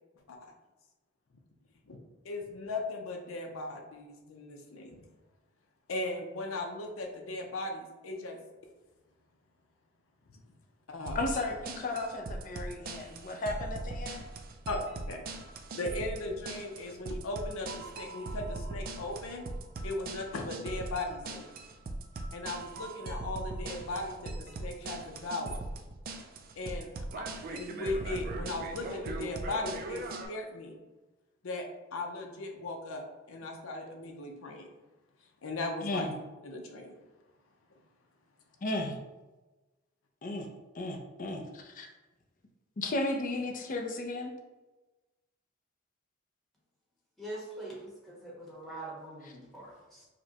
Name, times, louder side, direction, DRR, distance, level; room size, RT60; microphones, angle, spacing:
voice 1, 2.2-4.9 5.9-8.4 10.3-10.4 10.9-11.2 14.7-15.2 15.7-19.5 19.8-21.5 22.3-25.6 26.6-30.7 31.4-34.7 35.4-36.1 36.4-36.9, left 2 dB, 85° left, 2 dB, 0.6 m, -38 dB
voice 2, 11.1-14.2 35.8-36.1 38.6-39.0 40.2-40.5 40.7-41.9 42.8-44.3 49.2-49.3, left 2 dB, 40° left, 3 dB, 0.5 m, -34 dB
sound 1, 11.1-30.3, right 2 dB, 45° right, 0.3 m, -40 dB
voice 3, 47.2-50.1, right 1 dB, ahead, -5 dB, 1.0 m, -43 dB
5.0 x 2.2 x 2.8 m, 1.1 s
head